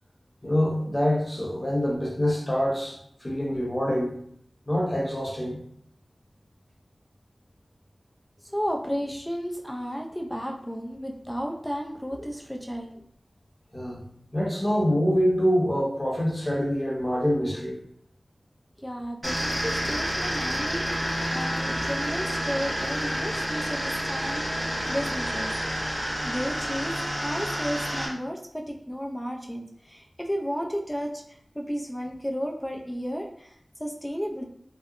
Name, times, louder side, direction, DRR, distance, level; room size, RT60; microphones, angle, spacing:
voice 1, 0.4-4.1 4.7-5.6 13.7-14.0 14.3-17.8, equal, 25° left, -3 dB, 0.9 m, -25 dB
voice 2, 8.4-12.9 18.8-25.5 26.2-31.2 31.5-33.5 33.8-34.4, equal, 5° left, 1 dB, 0.4 m, -33 dB
sound 1, 19.2-28.1, equal, 35° right, 0.9 m, -29 dB
2.8 x 2.0 x 2.4 m, 0.66 s
wide cardioid pair, 50°, 0 cm